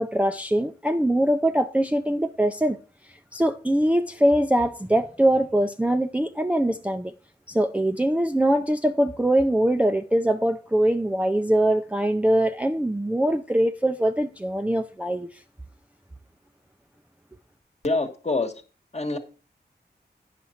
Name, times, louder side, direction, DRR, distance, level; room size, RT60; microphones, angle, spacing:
voice 1, 0.0-2.8 3.3-7.1 7.5-15.3, right 1 dB, 10° right, 0.4 m, -22 dB
voice 2, 17.8-18.5 18.9-19.2, left 3 dB, 40° left, 1.3 m, -25 dB
9.6 x 5.9 x 4.3 m
wide cardioid pair, 85°, 18 cm